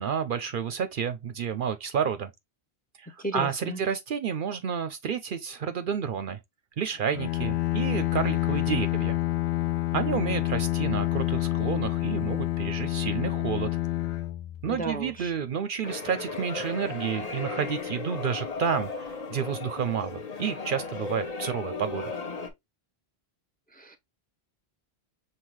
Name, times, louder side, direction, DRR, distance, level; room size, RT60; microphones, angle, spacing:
voice 1, 0.0-2.3 3.0-6.4 6.8-9.2 9.9-13.7 14.6-22.1, right 7 dB, 60° right, 0.6 m, -30 dB
voice 2, 3.2-3.8 14.7-15.3 23.8-24.0, right 1 dB, 10° left, 0.6 m, -34 dB
Bowed string instrument, 7.1-15.1, left 15 dB, 85° left, 0.9 m, -28 dB
sound 1, 15.8-22.5, left 4 dB, 40° left, 0.9 m, -35 dB
5.5 x 2.7 x 3.0 m
omnidirectional pair, 1.1 m